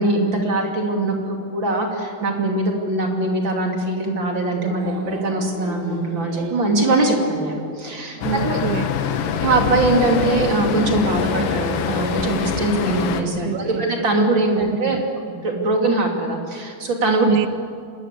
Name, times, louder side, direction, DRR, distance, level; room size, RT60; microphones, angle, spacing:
voice 1, 0.0-8.6 9.4-17.4, right 2 dB, 30° right, 1 dB, 2.9 m, -22 dB
sound 1, 4.5-15.1, right 5 dB, 60° right, 2.1 m, -36 dB
Traffic noise roadway noise, 8.2-13.2, left 7 dB, 70° left, 3.3 m, -24 dB
voice 2, 8.2-8.9 13.4-13.9 14.5-15.0 17.3-17.5, right 13 dB, 85° right, 14 dB, 3.1 m, -26 dB
26.5 x 20.5 x 8.4 m, 2.3 s
omnidirectional pair, 5.3 m